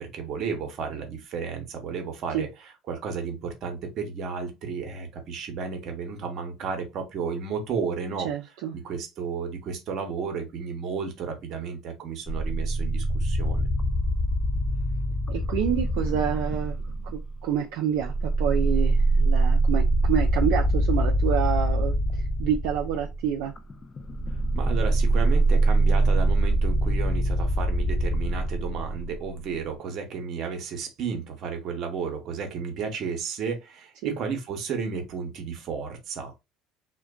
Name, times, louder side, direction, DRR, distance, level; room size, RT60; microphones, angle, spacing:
voice 1, 0.0-2.5 2.9-8.3 8.7-13.7 24.5-36.3, right 5 dB, 55° right, 0.8 m, -33 dB
voice 2, 8.2-8.8 15.3-16.8 17.1-23.5 34.0-34.1, right 9 dB, 75° right, 0.4 m, -28 dB
sound 1, 12.3-17.4 17.9-29.5, right 1 dB, 30° left, 0.4 m, -24 dB
2.4 x 2.2 x 2.3 m
supercardioid pair, 85°, 0 cm